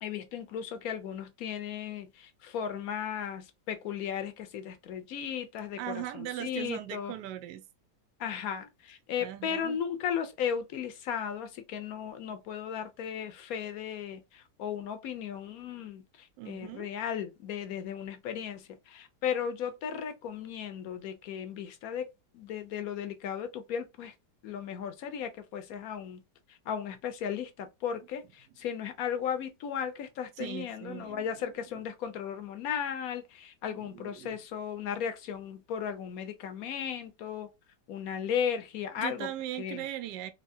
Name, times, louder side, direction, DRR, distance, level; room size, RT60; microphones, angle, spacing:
voice 1, 0.0-7.1 8.2-24.1 24.4-26.2 26.5-37.5 37.9-39.3 39.6-39.9, left 8 dB, 65° left, 1.0 m, -36 dB
voice 2, 5.8-7.6 9.2-9.8 16.4-16.9 30.4-31.5 33.7-34.4 39.0-40.3, right 12 dB, 80° right, 1.2 m, -39 dB
3.5 x 2.8 x 2.6 m
omnidirectional pair, 1.8 m